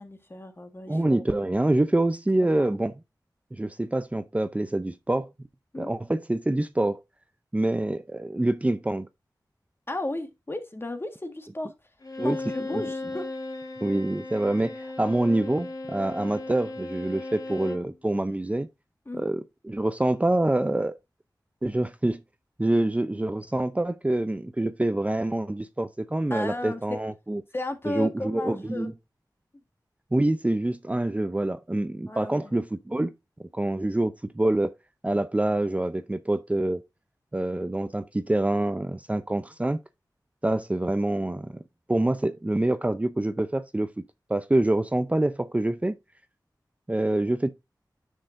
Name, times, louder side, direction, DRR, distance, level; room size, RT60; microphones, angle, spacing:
voice 1, 0.0-1.3 2.4-2.8 5.7-5.9 9.9-11.7 12.2-13.2 19.0-19.3 26.3-26.8 27.5-28.9 32.1-32.5, left 1 dB, 30° left, 1.6 m, -34 dB
voice 2, 0.9-2.9 3.5-5.3 5.8-7.0 7.5-9.1 12.2-12.4 12.7-12.8 13.8-18.7 19.2-20.9 21.6-22.2 22.6-27.4 27.9-28.9 30.1-33.1 33.5-34.7 35.0-36.8 37.3-39.8 40.4-41.5 41.9-44.0 44.3-46.0 46.9-47.5, right 1 dB, 20° right, 0.5 m, -26 dB
Bowed string instrument, 12.0-17.9, left 2 dB, 60° left, 1.6 m, -36 dB
9.9 x 6.4 x 2.6 m
wide cardioid pair, 75°, 7 cm